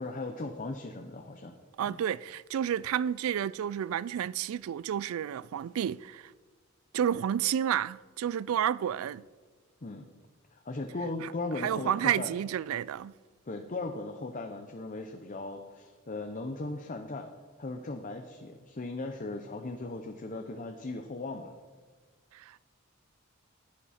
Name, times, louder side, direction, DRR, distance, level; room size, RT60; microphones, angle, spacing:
voice 1, 0.0-1.6 1.9-2.0 9.8-10.1 10.5-12.3 13.4-17.3 17.6-21.5, left 2 dB, 35° left, 0.7 m, -38 dB
voice 2, 1.8-6.3 6.9-9.2 11.2-11.3 11.6-13.1 22.3-22.7, right 9 dB, 70° right, 0.3 m, -31 dB
15.0 x 9.8 x 4.3 m
head